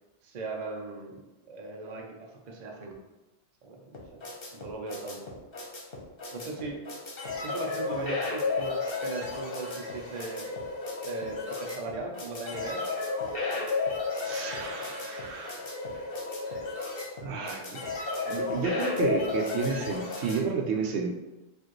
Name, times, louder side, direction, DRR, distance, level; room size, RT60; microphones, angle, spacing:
voice 1, 0.2-3.0 3.6-4.2 4.5-5.3 6.3-6.8 7.4-10.5 11.0-12.8, right 3 dB, 50° right, 1 dB, 0.7 m, -38 dB
sound 1, 3.9-20.4, left 3 dB, 60° left, 1.0 m, -33 dB
voice 2, 14.2-15.7 17.2-17.8 18.3-21.1, right 5 dB, 80° right, 2 dB, 0.9 m, -31 dB
4.7 x 2.5 x 3.0 m, 1.1 s
omnidirectional pair, 1.1 m